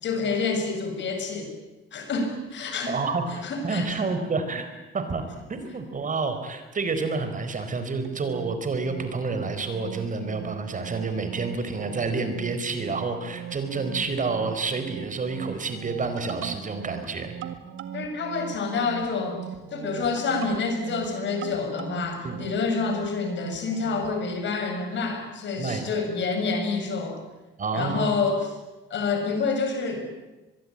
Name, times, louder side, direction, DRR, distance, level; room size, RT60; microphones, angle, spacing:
voice 1, 0.0-1.5 1.9-3.0 3.3-4.0 17.9-19.4 19.7-27.2 27.7-28.5 28.9-30.1, left 4 dB, 65° left, 5 dB, 6.3 m, -28 dB
voice 2, 2.9-5.2 5.5-17.3 22.2-22.4 25.6-25.9 27.6-28.1, right 4 dB, 40° right, 8 dB, 4.4 m, -29 dB
sound 1, 8.0-24.1, right 10 dB, 85° right, 1.9 m, -40 dB
24.0 x 22.0 x 8.8 m, 1.1 s
cardioid pair, 90°, 20 cm